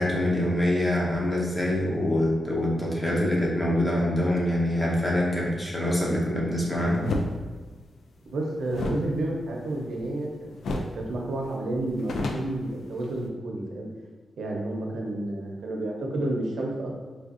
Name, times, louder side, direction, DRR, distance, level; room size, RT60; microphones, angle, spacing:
voice 1, 0.0-7.1, left 1 dB, 15° left, -3 dB, 0.9 m, -25 dB
sound 1, 7.0-7.3 8.7-10.3 10.6-11.0 11.3-11.4 11.7-13.3, left 2 dB, 80° left, 0.3 m, -32 dB
voice 2, 8.2-13.9 14.4-16.9, right 1 dB, 80° right, -1 dB, 0.6 m, -30 dB
4.2 x 2.5 x 2.5 m, 1.3 s
cardioid pair, 90°, 0 cm